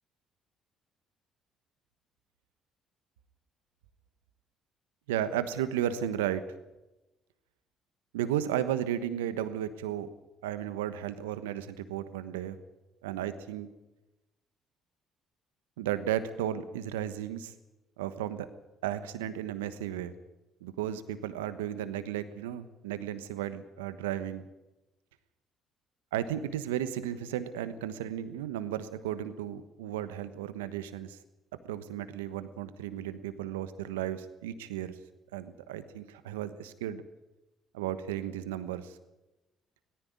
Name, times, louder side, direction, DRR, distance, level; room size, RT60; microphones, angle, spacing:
voice 1, 5.1-6.4 8.1-10.1 10.4-12.6 13.0-13.7 15.8-17.5 18.0-18.5 18.8-20.1 20.6-24.5 26.1-31.2 31.6-34.9 35.3-37.0 37.7-39.0, right 11 dB, 85° right, 13 dB, 1.2 m, -34 dB
17.5 x 15.5 x 9.6 m, 1.0 s
hypercardioid pair, 55°, 0 cm